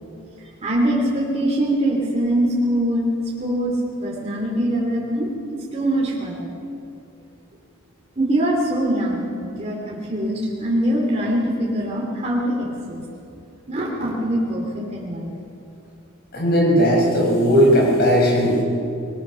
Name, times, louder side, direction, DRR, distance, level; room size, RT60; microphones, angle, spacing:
voice 1, 0.6-3.1 3.4-6.6 8.2-13.0 13.7-15.3, right 1 dB, 30° right, -4 dB, 3.1 m, -23 dB
voice 2, 16.3-18.6, equal, 50° left, -2 dB, 6.1 m, -17 dB
22.0 x 21.0 x 6.4 m, 2.6 s
head